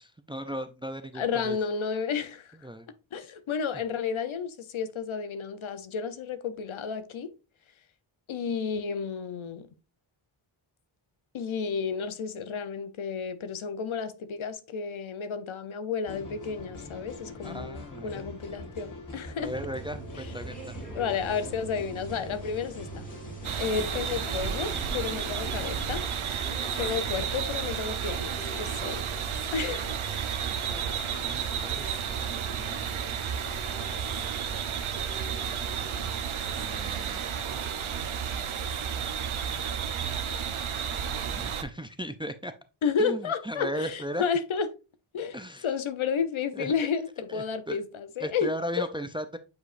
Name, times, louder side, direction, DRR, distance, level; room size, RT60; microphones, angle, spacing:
voice 1, 0.0-1.6 2.6-2.9 17.4-18.3 19.3-20.8 31.2-33.2 36.6-37.3 40.0-40.3 41.3-42.5 43.0-44.3 45.3-45.7 46.5-46.7 47.3-47.8 48.2-49.4, equal, 10° right, 0.4 m, -37 dB
voice 2, 1.1-2.5 3.1-7.3 8.3-9.7 11.3-19.5 20.9-22.9 23.6-26.0 26.8-29.1 29.5-30.0 42.8-44.7 45.1-45.4 45.6-48.5 48.8-48.9, left 6 dB, 70° left, 0.9 m, -31 dB
sound 1, 16.1-26.0, left 1 dB, 40° left, 2.2 m, -43 dB
sound 2, 19.4-36.1, right 4 dB, 15° left, 1.9 m, -43 dB
sound 3, 23.4-41.6, right 7 dB, 75° right, 0.9 m, -32 dB
8.3 x 5.0 x 2.5 m
wide cardioid pair, 125°, 49 cm